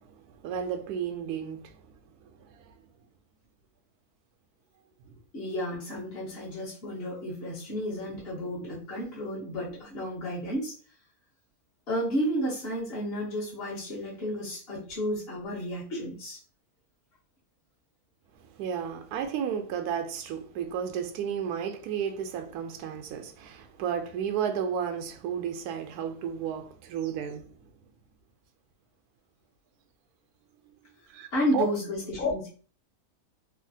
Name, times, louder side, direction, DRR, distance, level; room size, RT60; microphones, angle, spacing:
voice 1, 0.4-1.7 2.2-2.7 18.6-27.5 31.1-31.7, right 8 dB, 85° right, 1.1 m, -33 dB
voice 2, 5.3-10.8 11.9-16.4 31.3-32.5, equal, 45° left, 1.1 m, -32 dB
3.1 x 2.4 x 2.6 m
omnidirectional pair, 1.6 m